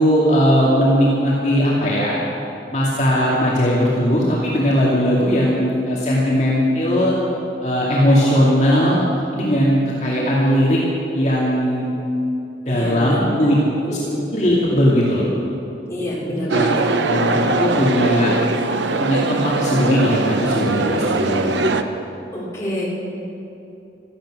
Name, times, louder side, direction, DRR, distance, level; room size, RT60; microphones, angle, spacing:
voice 1, 0.0-2.2 2.7-7.1 7.6-9.0 9.3-10.8 11.1-11.9 12.7-13.6 13.9-14.0 14.3-15.2 16.3-16.7 17.0-18.3 19.0-21.7, equal, 40° left, -6 dB, 2.4 m, -18 dB
voice 2, 12.6-13.5 13.8-14.3 15.9-16.8 22.3-22.9, left 1 dB, 15° left, -6 dB, 3.5 m, -27 dB
sound 1, 16.5-21.8, right 3 dB, 85° right, 0.8 m, -21 dB
16.5 x 13.5 x 6.2 m, 2.9 s
head